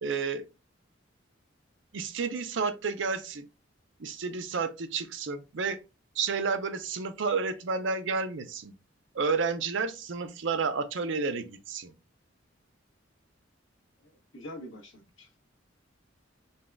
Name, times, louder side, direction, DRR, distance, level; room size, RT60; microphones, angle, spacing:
voice 1, 0.0-0.4 1.9-3.5 4.0-5.8 6.2-8.7 9.1-11.9, right 4 dB, 70° right, 0.6 m, -31 dB
voice 2, 14.0-15.3, left 1 dB, 90° left, 1.3 m, -45 dB
4.0 x 2.3 x 3.3 m
head